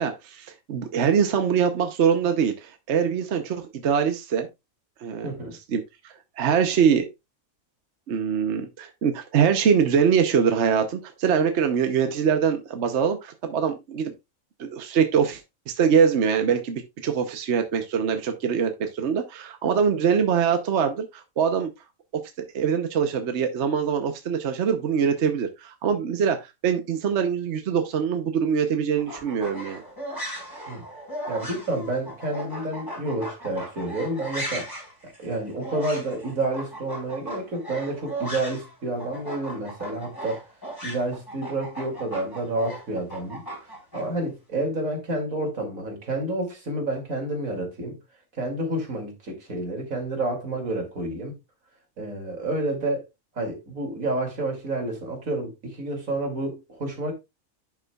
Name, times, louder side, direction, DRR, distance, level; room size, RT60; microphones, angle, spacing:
voice 1, 0.0-4.5 5.0-5.3 5.7-5.8 6.4-7.1 8.1-14.1 14.6-15.4 15.7-21.7 22.1-22.2 22.5-29.8, right 7 dB, 60° right, 1.1 m, -23 dB
voice 2, 5.2-5.6 30.7-30.8 31.3-34.7 35.0-40.4 40.8-43.5 43.9-48.0 48.3-51.3 52.0-53.0 53.3-57.1, right 2 dB, 90° right, 3.0 m, -29 dB
sound 1, 29.0-38.7 39.0-44.0, right 1 dB, 15° left, 3.9 m, -37 dB
10.5 x 5.9 x 2.3 m
omnidirectional pair, 1.4 m